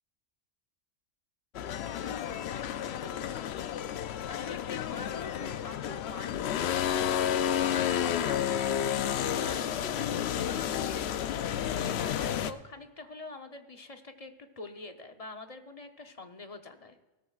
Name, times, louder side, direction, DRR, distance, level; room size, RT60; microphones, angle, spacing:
sound 1, 1.5-12.5, left 9 dB, 65° left, 0.8 m, -31 dB
voice 1, 2.0-17.0, left 3 dB, 35° left, 6 dB, 0.8 m, -45 dB
18.0 x 13.5 x 2.4 m, 1.1 s
omnidirectional pair, 1.2 m